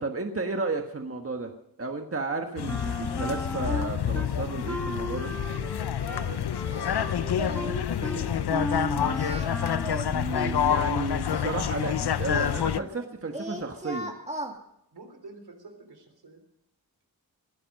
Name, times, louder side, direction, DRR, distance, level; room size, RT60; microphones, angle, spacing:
voice 1, 0.0-1.5 1.8-5.3 10.1-14.1, right 3 dB, 35° right, 4 dB, 1.4 m, -33 dB
sound 1, 2.6-12.8, left 9 dB, 85° left, 0.7 m, -28 dB
Wind instrument woodwind instrument, 2.7-4.3 4.7-10.0, equal, 5° left, 1.4 m, -36 dB
voice 2, 6.0-9.4 14.9-16.4, right 3 dB, 80° right, 5 dB, 3.6 m, -47 dB
Singing, 6.7-7.0 7.4-7.8 8.0-8.3 9.1-10.7 11.3-13.1 13.3-14.5, right 1 dB, 20° right, 2.4 m, -37 dB
21.5 x 11.0 x 5.4 m, 0.77 s
wide cardioid pair, 100°, 38 cm